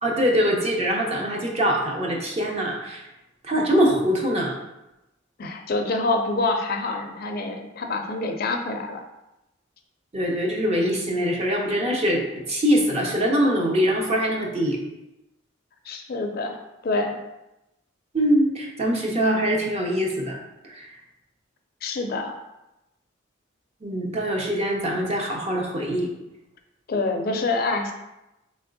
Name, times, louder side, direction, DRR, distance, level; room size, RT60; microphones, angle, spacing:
voice 1, 0.0-3.0 3.4-4.5 10.1-14.8 18.1-20.4 20.6-20.9 23.8-26.1, equal, 35° right, -1 dB, 0.7 m, -23 dB
voice 2, 5.4-9.0 15.9-17.2 21.8-22.4 26.9-27.9, left 3 dB, 50° left, 5 dB, 0.4 m, -26 dB
3.4 x 3.1 x 3.9 m, 0.93 s
head